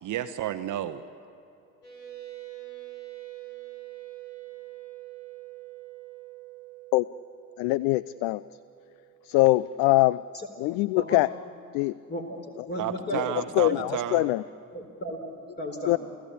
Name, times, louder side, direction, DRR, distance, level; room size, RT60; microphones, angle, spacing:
voice 1, 0.0-1.0 12.8-14.3, right 11 dB, 40° right, 11 dB, 0.9 m, -31 dB
sound 1, 1.8-9.9, right 16 dB, 85° left, 4.6 m, -45 dB
voice 2, 7.6-8.4 9.2-10.2 10.6-11.3 11.7-11.9 13.1-13.2 13.6-14.4 15.9-16.0, left 19 dB, 50° left, 19 dB, 0.5 m, -23 dB
voice 3, 12.1-13.4 13.7-13.8 14.7-16.0, equal, 20° left, 3 dB, 4.1 m, -35 dB
29.0 x 15.5 x 8.5 m, 2.7 s
figure-of-eight pair, 60°, 46 cm